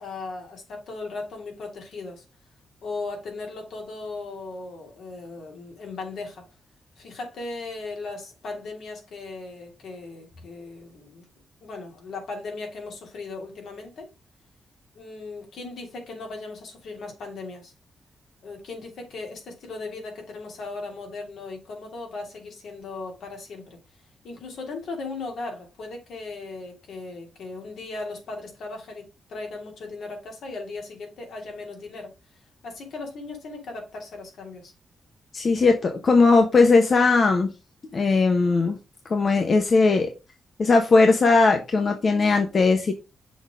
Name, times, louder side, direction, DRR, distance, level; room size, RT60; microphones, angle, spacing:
voice 1, 0.0-2.2 2.8-6.4 7.0-11.2 11.6-14.1 14.9-17.7 18.4-23.8 24.2-32.1 32.6-34.7, left 3 dB, 80° left, 2.7 m, -37 dB
voice 2, 35.3-37.5 37.9-38.8 39.1-40.1 40.6-42.9, left 3 dB, 45° left, 1.0 m, -19 dB
6.3 x 3.9 x 4.9 m
wide cardioid pair, 130°, 0 cm